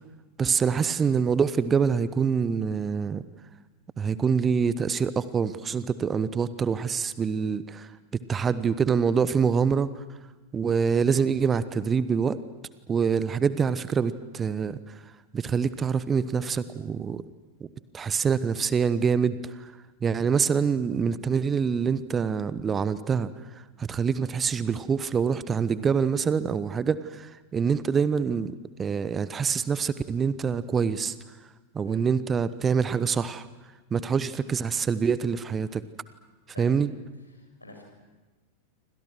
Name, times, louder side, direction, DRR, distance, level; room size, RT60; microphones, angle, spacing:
voice 1, 0.4-3.2 4.0-7.9 8.3-9.9 10.5-12.4 12.9-14.8 15.3-17.2 17.9-19.7 20.0-23.3 23.8-31.1 31.7-33.5 33.9-35.8 36.6-36.9, right 6 dB, 20° right, 16 dB, 1.0 m, -25 dB
voice 2, 37.3-37.8, left 2 dB, 85° left, 2 dB, 7.4 m, -46 dB
28.0 x 26.0 x 6.3 m, 1.2 s
figure-of-eight pair, 90°, 0 cm